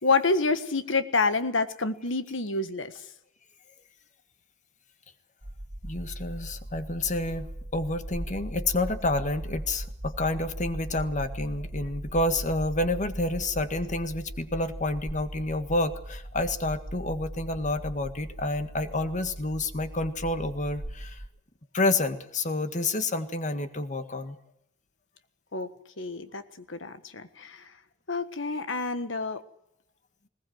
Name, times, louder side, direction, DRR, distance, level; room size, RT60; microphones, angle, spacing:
voice 1, 0.0-2.9 25.5-25.7 26.0-26.4 26.7-27.7 28.1-29.4, left 3 dB, 70° left, 11 dB, 1.6 m, -28 dB
sound 1, 5.4-21.3, right 1 dB, 40° right, 1.6 m, -39 dB
voice 2, 5.8-21.2 21.7-24.4, left 2 dB, 40° left, 10 dB, 1.7 m, -29 dB
20.5 x 19.0 x 7.9 m, 0.78 s
head